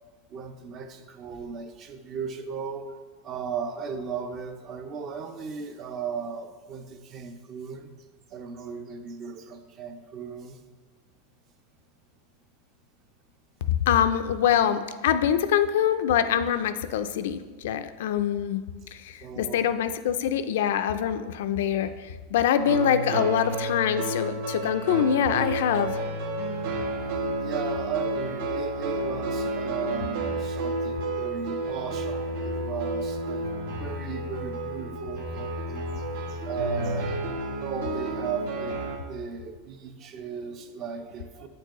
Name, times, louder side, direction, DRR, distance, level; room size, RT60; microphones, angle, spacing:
voice 1, 0.3-2.9 3.2-7.9 8.3-10.6 19.2-19.8 27.4-33.4 33.8-37.2 37.6-38.8 39.1-41.5, right 6 dB, 35° right, 8 dB, 0.5 m, -36 dB
voice 2, 13.7-18.6 18.9-26.0, left 9 dB, 75° left, 10 dB, 0.4 m, -24 dB
sound 1, 22.5-39.0, right 1 dB, 65° right, 1.1 m, -31 dB
8.5 x 4.5 x 3.0 m, 1.4 s
supercardioid pair, 150°, 0 cm